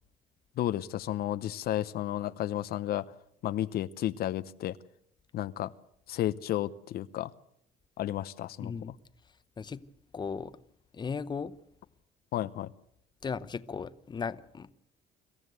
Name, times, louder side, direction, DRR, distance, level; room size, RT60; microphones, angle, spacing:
voice 1, 0.6-3.0 3.4-4.8 5.3-5.7 6.1-7.3 8.0-8.7 12.3-12.7, left 13 dB, 65° left, 0.8 m, -32 dB
voice 2, 8.6-8.9 9.6-9.8 10.1-10.6 10.9-11.5 13.2-14.7, left 5 dB, 25° left, 0.9 m, -36 dB
25.5 x 14.5 x 8.1 m
cardioid pair, 110°, 17 cm